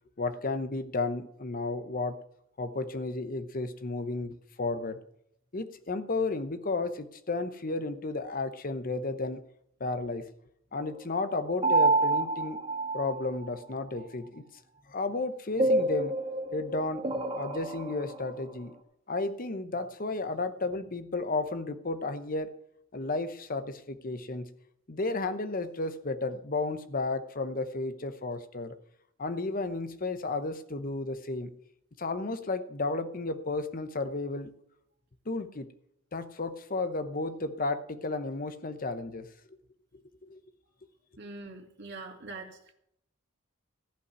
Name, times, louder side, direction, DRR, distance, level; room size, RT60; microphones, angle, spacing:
voice 1, 0.2-2.2 2.6-5.0 5.5-9.4 9.8-10.3 10.7-12.6 12.9-14.4 14.9-16.2 16.5-17.1 17.4-18.7 19.1-22.6 22.9-24.5 24.9-28.7 29.2-31.5 32.0-34.5 35.3-35.7 36.1-39.3 40.2-40.4, left 3 dB, 45° left, 11 dB, 0.9 m, -33 dB
sound 1, 11.6-13.5 15.6-18.3, right 2 dB, 30° right, 1.4 m, -28 dB
voice 2, 41.2-42.6, right 3 dB, 55° right, 1 dB, 2.5 m, -43 dB
15.0 x 5.4 x 9.5 m, 0.76 s
head